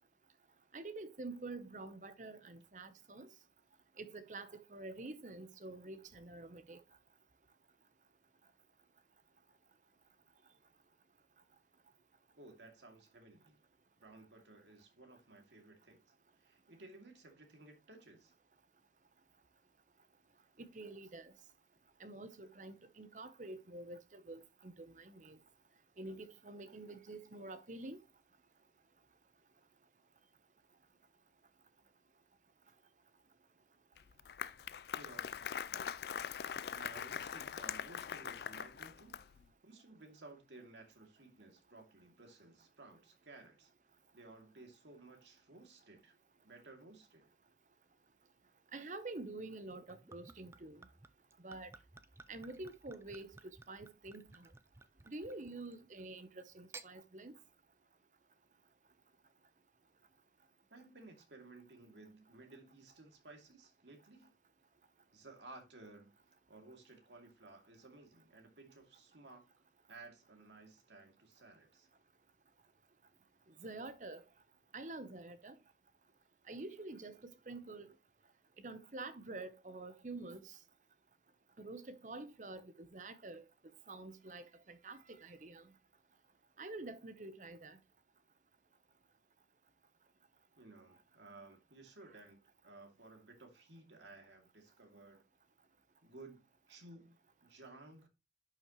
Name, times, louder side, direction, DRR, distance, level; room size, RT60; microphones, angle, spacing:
voice 1, 0.7-3.3 4.0-6.8 20.6-21.3 22.0-25.4 26.0-28.0 48.7-50.9 51.4-51.7 52.3-54.5 55.1-57.4 73.6-74.2 74.7-75.6 76.5-77.9 78.6-80.6 81.6-83.5 83.9-85.7 86.6-87.8, right 2 dB, 45° right, 0.8 m, -48 dB
voice 2, 12.4-13.6 14.0-16.0 16.4-18.3 34.9-35.3 36.7-39.2 39.6-43.7 44.1-46.1 46.4-47.3 60.7-64.3 65.1-66.1 66.5-69.4 69.9-71.9 90.6-92.4 92.6-95.2 96.0-98.1, right 2 dB, 90° right, 2.4 m, -57 dB
Applause, 34.0-39.4, left 8 dB, 65° left, 0.3 m, -42 dB
Gurgling / Chink clink / Liquid, 49.7-55.9 56.5-56.9, right 3 dB, 15° right, 0.4 m, -57 dB
11.0 x 5.9 x 3.0 m
head